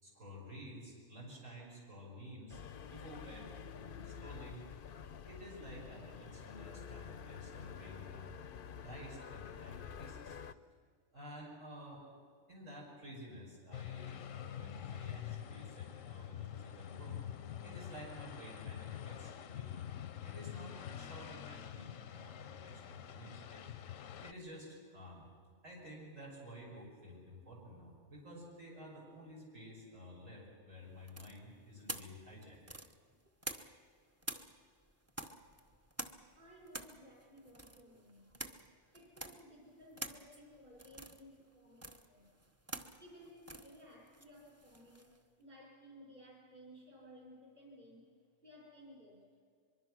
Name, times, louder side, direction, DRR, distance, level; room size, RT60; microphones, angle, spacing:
voice 1, 0.0-3.5 3.7-4.6 4.9-10.4 11.1-12.0 12.5-17.1 17.6-19.7 20.2-23.6 24.0-25.3 25.6-32.6, left 1 dB, 85° right, -4 dB, 6.2 m, -51 dB
sound 1, 2.5-10.5, left 7 dB, 50° left, 0.8 m, -49 dB
sound 2, 13.7-24.3, left 10 dB, 85° left, 1.1 m, -46 dB
sound 3, 31.1-33.9 34.2-45.2, right 1 dB, 15° right, 0.8 m, -48 dB
voice 2, 36.3-38.3 38.9-42.3 43.0-48.1 48.4-49.3, equal, 40° right, -2 dB, 5.7 m, -58 dB
23.5 x 23.0 x 6.2 m, 2.1 s
omnidirectional pair, 1.3 m